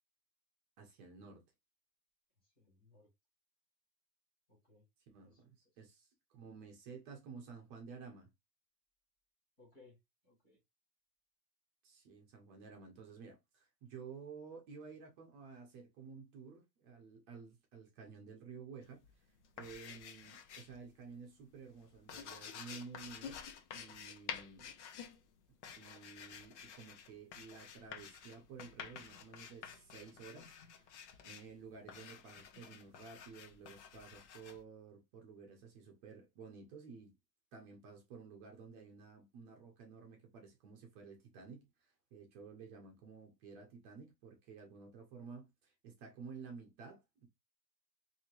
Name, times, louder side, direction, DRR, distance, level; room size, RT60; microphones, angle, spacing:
voice 1, 0.8-1.4 5.1-8.3 11.8-19.1 19.6-23.4 23.7-24.7 25.8-30.5 30.8-37.1 37.5-47.3, right 5 dB, 30° right, 0.8 m, -53 dB
voice 2, 2.4-3.1 4.5-4.9 5.2-5.4 5.7-5.8 9.6-10.6, left 3 dB, 5° left, 0.3 m, -65 dB
sound 1, 18.8-20.9 21.2-34.6, left 7 dB, 45° left, 0.7 m, -50 dB
3.5 x 2.8 x 3.0 m
supercardioid pair, 160°, 49 cm